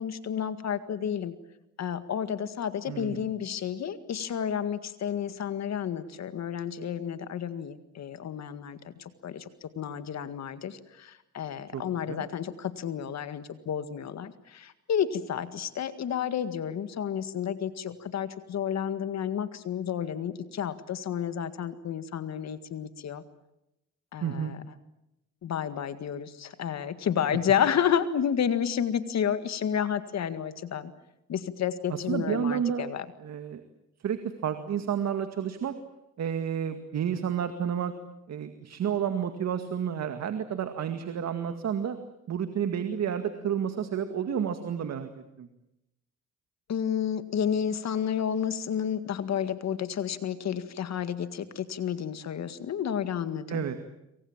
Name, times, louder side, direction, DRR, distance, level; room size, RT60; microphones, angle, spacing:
voice 1, 0.0-1.3 1.8-9.5 9.8-23.2 24.1-24.6 25.4-30.9 31.3-33.1 46.7-53.6, left 8 dB, 60° left, 11 dB, 1.9 m, -31 dB
voice 2, 2.9-3.3 11.7-12.3 24.2-24.5 31.9-32.9 33.2-33.6 34.0-35.7 36.2-37.9 38.3-42.0 42.3-45.1 45.4-45.5 53.5-53.8, right 8 dB, 60° right, 8 dB, 2.1 m, -30 dB
27.0 x 24.0 x 7.4 m, 0.88 s
cardioid pair, 90°, 30 cm